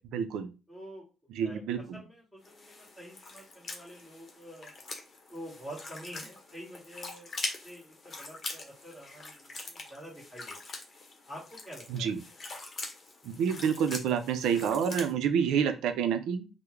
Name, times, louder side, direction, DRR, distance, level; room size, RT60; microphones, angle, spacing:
voice 1, 0.1-0.5 1.3-2.0 11.9-12.2 13.2-16.5, right 7 dB, 85° right, 9 dB, 0.4 m, -28 dB
voice 2, 0.7-1.0 1.4-1.6 1.9-4.7 5.3-7.3 7.6-10.6 11.3-12.1, equal, ahead, -7 dB, 1.7 m, -47 dB
sound 1, 2.4-15.1, left 3 dB, 40° left, 0.8 m, -43 dB
3.4 x 2.0 x 3.1 m, 0.31 s
cardioid pair, 90°, 0 cm